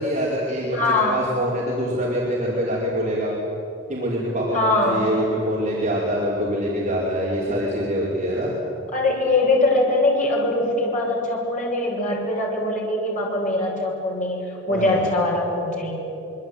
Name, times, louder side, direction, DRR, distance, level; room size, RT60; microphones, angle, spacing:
voice 1, 0.0-3.3 3.9-8.5 14.7-15.0, equal, 35° right, -6 dB, 5.1 m, -24 dB
voice 2, 0.7-1.2 4.5-5.1 8.9-15.9, left 2 dB, 40° left, -1 dB, 6.8 m, -22 dB
26.0 x 24.0 x 9.3 m, 2.9 s
head